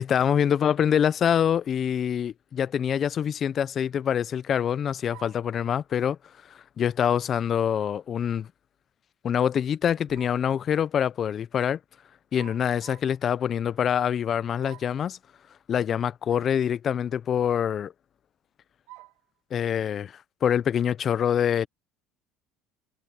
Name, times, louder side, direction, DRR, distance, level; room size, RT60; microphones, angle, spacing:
voice 1, 0.0-6.2 6.8-8.5 9.2-11.8 12.3-15.2 15.7-17.9 19.5-20.1 20.4-21.7, left 8 dB, 45° left, 0.7 m, -25 dB
sound 1, 5.1-5.5 7.8-8.1 9.9-10.5 12.3-13.2 14.6-15.0 16.3-16.6 17.1-17.2 18.9-19.2, right 20 dB, 75° right, 1.7 m, -50 dB
supercardioid pair, 95°, 0 cm